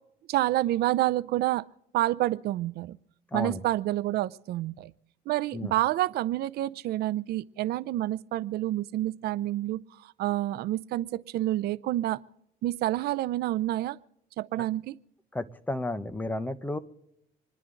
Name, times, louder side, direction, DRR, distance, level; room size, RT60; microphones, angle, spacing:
voice 1, 0.3-1.6 1.9-3.0 3.3-4.9 5.3-9.8 10.2-12.2 12.6-14.0 14.4-14.9, right 15 dB, 70° right, 17 dB, 0.5 m, -28 dB
voice 2, 3.3-3.6 5.5-5.7 15.3-16.8, left 1 dB, 10° left, 11 dB, 0.9 m, -32 dB
26.5 x 11.0 x 3.8 m, 0.79 s
cardioid pair, 110°, 17 cm